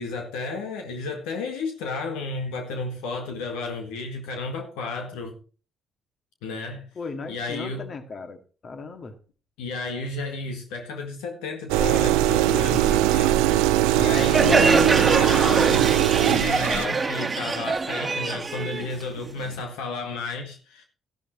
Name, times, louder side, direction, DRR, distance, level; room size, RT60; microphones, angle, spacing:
voice 1, 0.0-5.4 6.4-6.9 7.3-7.8 9.6-13.4 13.9-15.9 16.2-20.8, left 3 dB, 70° left, 1.9 m, -32 dB
voice 2, 7.0-9.2 13.9-14.6, left 4 dB, 45° left, 2.2 m, -37 dB
sound 1, 11.7-16.9, right 13 dB, 70° right, 0.7 m, -21 dB
Crowd, 14.2-19.6, right 4 dB, 30° right, 1.5 m, -24 dB
13.5 x 11.5 x 3.1 m
figure-of-eight pair, 45°, 0 cm